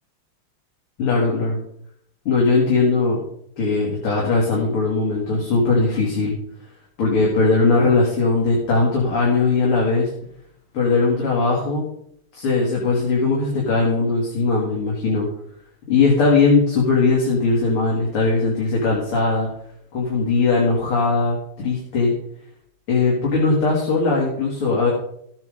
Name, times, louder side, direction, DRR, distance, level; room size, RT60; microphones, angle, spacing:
voice 1, 1.0-1.6 2.3-3.2 3.6-6.3 7.0-10.1 10.7-11.8 12.3-15.3 15.9-19.5 19.9-22.1 22.9-24.9, left 3 dB, 80° left, -4 dB, 3.7 m, -19 dB
14.5 x 9.3 x 3.9 m, 0.69 s
omnidirectional pair, 2.4 m